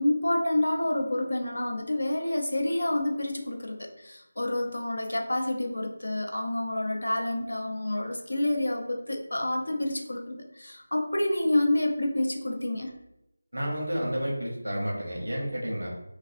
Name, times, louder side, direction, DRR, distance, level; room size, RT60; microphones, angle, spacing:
voice 1, 0.0-12.9, left 1 dB, 75° left, 2 dB, 0.4 m, -28 dB
voice 2, 13.5-15.9, equal, 85° right, -2 dB, 0.7 m, -30 dB
2.4 x 2.3 x 2.4 m, 0.89 s
figure-of-eight pair, 170°, 0 cm